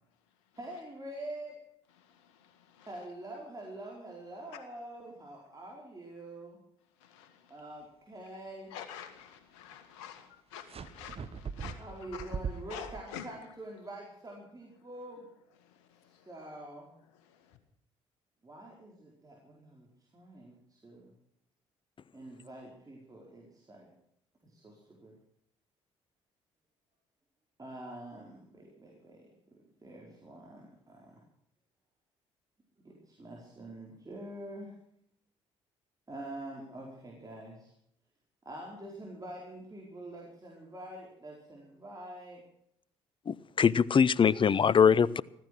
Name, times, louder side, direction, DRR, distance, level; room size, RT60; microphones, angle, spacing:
voice 1, 0.6-1.5 2.8-6.6 7.5-8.7 11.8-15.3 16.2-16.9 18.4-19.9 20.1-21.1 22.1-23.9 24.4-25.1 27.6-29.3 29.8-31.2 32.8-34.7 36.1-37.7 38.4-42.4, right 1 dB, 25° right, 4.6 m, -46 dB
voice 2, 8.7-10.2 10.5-11.2 11.6-11.8 12.7-13.2, left 9 dB, 75° left, 1.8 m, -45 dB
sound 1, 10.7-13.0, right 6 dB, 40° right, 1.3 m, -40 dB
voice 3, 43.3-45.2, left 7 dB, 35° left, 0.6 m, -23 dB
15.0 x 14.5 x 6.2 m
hypercardioid pair, 50°, 15 cm